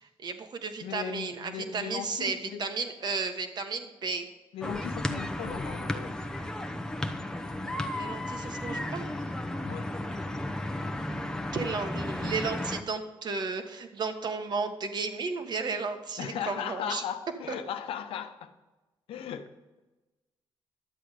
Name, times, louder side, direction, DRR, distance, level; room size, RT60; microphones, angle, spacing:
voice 1, 0.0-4.2 7.9-9.1 11.5-17.0, right 4 dB, 50° right, 1.4 m, -33 dB
voice 2, 0.8-2.7 4.5-6.3 9.1-9.2 9.6-9.9 16.2-18.5 19.1-19.5, left 8 dB, 85° left, 0.9 m, -37 dB
sound 1, 4.6-12.8, left 1 dB, 5° left, 0.9 m, -34 dB
12.0 x 8.0 x 5.0 m
cardioid pair, 105°, 9 cm